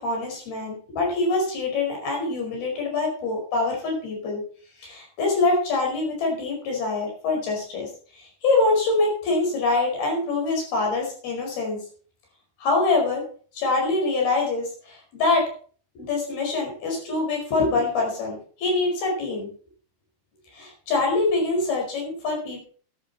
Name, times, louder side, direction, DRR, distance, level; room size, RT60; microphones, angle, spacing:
voice 1, 0.0-4.4 4.8-7.9 8.2-11.8 12.6-13.2 13.5-15.5 15.9-19.5 20.5-22.6, left 3 dB, 50° left, 1 dB, 6.6 m, -24 dB
12.0 x 12.0 x 4.2 m, 0.43 s
omnidirectional pair, 6.0 m